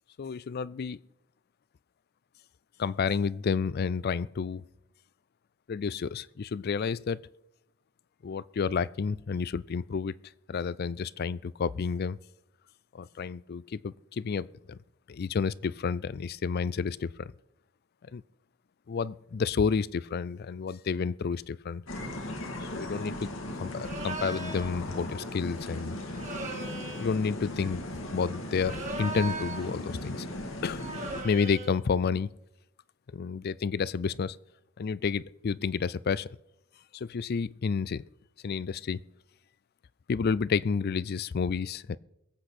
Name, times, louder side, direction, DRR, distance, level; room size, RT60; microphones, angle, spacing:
voice 1, 0.2-1.0 2.8-4.6 5.7-7.2 8.2-10.2 10.5-12.2 12.9-14.8 15.1-17.3 18.1-18.2 18.9-21.8 22.6-23.3 23.6-26.0 27.0-27.8 28.1-30.3 30.6-30.8 31.2-32.3 33.1-34.4 34.8-36.3 36.9-38.0 38.4-39.0 40.1-42.0, left 5 dB, 50° left, 0.4 m, -30 dB
sound 1, 21.9-31.2, left 1 dB, 75° left, 1.9 m, -37 dB
sound 2, 23.8-24.7 26.1-27.2 28.5-29.8 30.8-31.8, right 3 dB, 35° right, 1.9 m, -38 dB
22.5 x 8.1 x 4.3 m
head